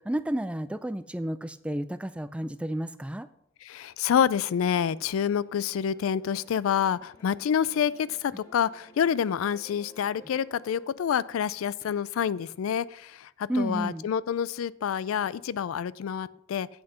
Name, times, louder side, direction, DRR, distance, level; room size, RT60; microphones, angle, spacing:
voice 1, 0.0-3.3 13.5-14.1, right 1 dB, 5° right, 12 dB, 0.3 m, -31 dB
voice 2, 3.6-16.7, left 8 dB, 85° left, 19 dB, 0.3 m, -28 dB
sound 1, 4.4-10.9, left 1 dB, 15° left, 1.8 m, -55 dB
8.0 x 6.4 x 5.6 m, 0.73 s
head